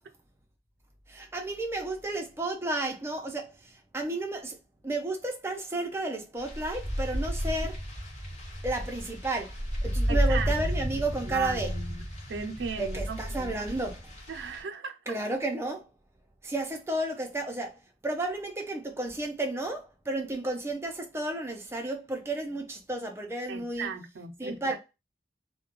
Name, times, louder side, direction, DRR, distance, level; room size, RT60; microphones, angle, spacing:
voice 1, 1.1-4.6 4.8-7.8 8.6-9.5 9.8-11.7 12.8-14.1 15.1-15.9 16.4-23.9 24.4-24.8, right 2 dB, 15° right, 0.5 m, -32 dB
sound 1, 6.4-14.6, equal, 40° left, 0.8 m, -32 dB
voice 2, 10.1-10.5 11.2-12.0 12.3-13.2 14.3-15.2 23.5-24.8, right 5 dB, 90° right, 0.5 m, -37 dB
2.3 x 2.1 x 2.9 m
head